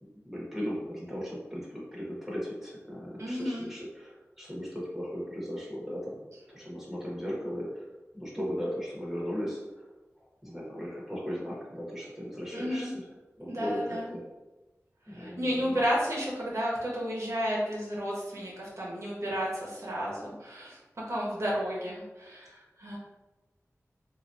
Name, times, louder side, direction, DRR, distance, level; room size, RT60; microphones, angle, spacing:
voice 1, 0.0-6.2 6.5-7.7 8.1-9.6 10.4-13.0 13.4-14.2 15.1-15.8, equal, 5° right, -5 dB, 1.1 m, -37 dB
voice 2, 3.2-3.7 12.5-12.9 13.5-14.1 15.1-20.8 21.1-23.0, equal, 65° right, -6 dB, 0.9 m, -32 dB
3.1 x 2.4 x 2.6 m, 1.1 s
wide cardioid pair, 50°, 5 cm